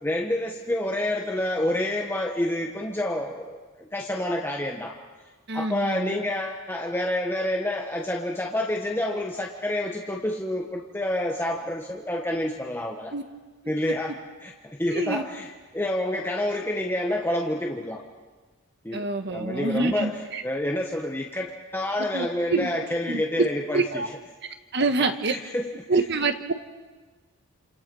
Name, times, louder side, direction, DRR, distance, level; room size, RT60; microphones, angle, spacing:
voice 1, 0.0-5.0 5.5-13.1 13.7-14.1 14.4-15.5 15.7-18.0 18.8-24.1 25.0-25.7, left 1 dB, 10° left, 0 dB, 1.4 m, -28 dB
voice 2, 5.5-6.2 13.1-13.2 14.9-15.2 18.9-20.4 22.1-22.7 23.1-23.5 23.7-24.1 24.7-25.4 25.9-26.5, right 3 dB, 50° right, 7 dB, 1.4 m, -26 dB
28.0 x 27.5 x 5.6 m, 1.3 s
head